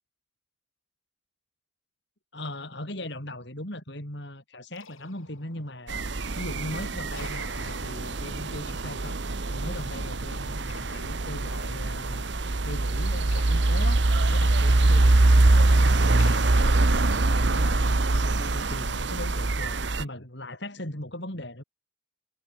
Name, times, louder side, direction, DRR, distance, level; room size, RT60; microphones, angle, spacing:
voice 1, 2.3-6.1 6.3-9.2 9.5-12.2 12.6-16.4 16.9-21.6, left 1 dB, 60° left, 6.8 m, -39 dB
sound 1, 4.7-18.1, left 4 dB, 85° left, 5.6 m, -50 dB
sound 2, 5.9-20.0, right 2 dB, 60° right, 1.1 m, -23 dB
head